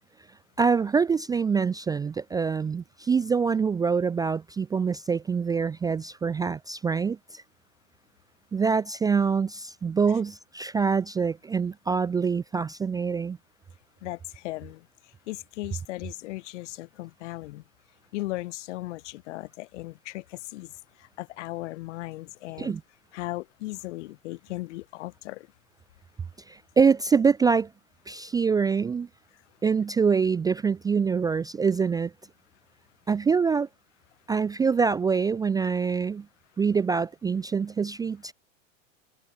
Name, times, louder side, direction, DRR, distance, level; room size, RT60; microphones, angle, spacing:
voice 1, 0.6-7.4 8.5-13.4 22.6-22.8 26.5-27.7 28.1-29.1 29.6-32.1 33.1-33.7 34.3-36.3 36.6-38.3, right 5 dB, 10° right, 0.4 m, -25 dB
voice 2, 14.0-17.6 18.1-22.8 23.1-25.5, left 19 dB, 65° left, 1.4 m, -37 dB
hypercardioid pair, 100°, 39 cm